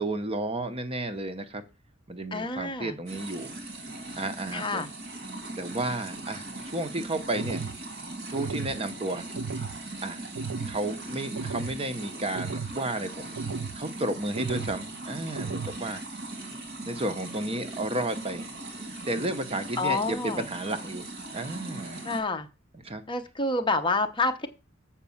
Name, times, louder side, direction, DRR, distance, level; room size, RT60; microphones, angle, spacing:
voice 1, 0.0-1.6 2.1-3.5 4.2-4.8 5.6-6.4 6.7-7.7 8.3-9.3 10.0-10.3 10.7-13.3 13.8-16.0 16.8-18.5 19.1-21.1 21.3-22.0 22.8-23.0, right 2 dB, 30° right, 0.8 m, -32 dB
voice 2, 2.3-3.0 4.5-4.9 19.8-20.5 22.0-22.5 23.1-24.5, left 3 dB, 25° left, 0.8 m, -28 dB
sound 1, 3.1-22.2, right 2 dB, 55° right, 2.1 m, -39 dB
sound 2, 7.4-7.8 8.4-8.8 9.4-9.8 10.4-10.8 11.4-11.8 12.4-12.8 13.4-13.8 14.4-14.8 15.4-15.8, right 5 dB, 75° right, 0.6 m, -34 dB
7.2 x 5.3 x 7.1 m
head